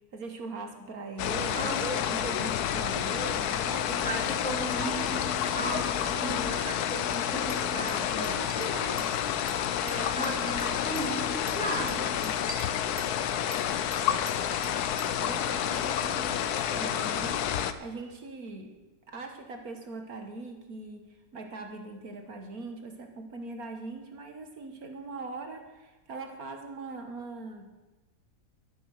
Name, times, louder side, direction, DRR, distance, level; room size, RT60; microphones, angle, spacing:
voice 1, 0.1-4.3 4.8-5.1 8.1-9.2 15.2-18.7 19.1-27.7, right 3 dB, 65° right, 4 dB, 1.8 m, -41 dB
sound 1, 1.2-17.7, left 9 dB, 75° left, 1.2 m, -29 dB
voice 2, 1.5-1.9 3.9-8.3 9.8-12.5, right 2 dB, 5° left, 1 dB, 1.7 m, -36 dB
Glass, 7.5-9.2 9.5-11.1 11.5-13.2 13.5-15.2, right 3 dB, 30° right, 1.0 m, -45 dB
12.5 x 9.4 x 6.4 m, 1.2 s
omnidirectional pair, 1.7 m